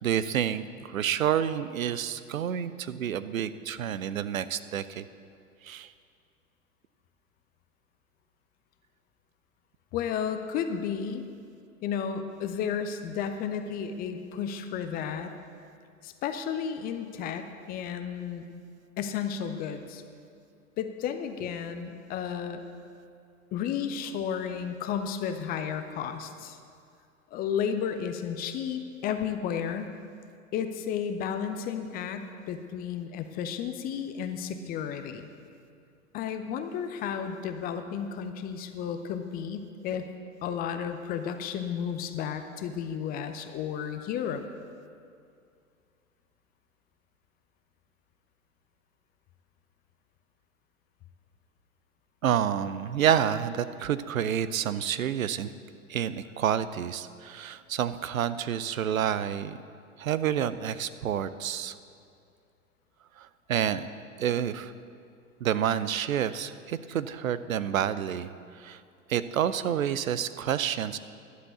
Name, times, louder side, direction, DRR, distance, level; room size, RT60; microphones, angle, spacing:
voice 1, 0.0-5.1 5.6-5.9 18.5-18.7 52.2-55.5 55.9-59.6 60.0-61.7 63.2-63.9 64.2-64.7 65.4-68.3 68.6-68.8 69.1-71.0, right 9 dB, 70° right, 14 dB, 0.6 m, -29 dB
voice 2, 9.9-11.2 11.8-15.3 16.0-18.5 19.0-20.0 20.8-22.6 23.5-26.6 27.3-29.9 30.5-35.3 36.1-40.1 40.4-44.4, left 7 dB, 20° left, 8 dB, 0.5 m, -33 dB
11.5 x 7.6 x 8.2 m, 2.4 s
figure-of-eight pair, 95°, 43 cm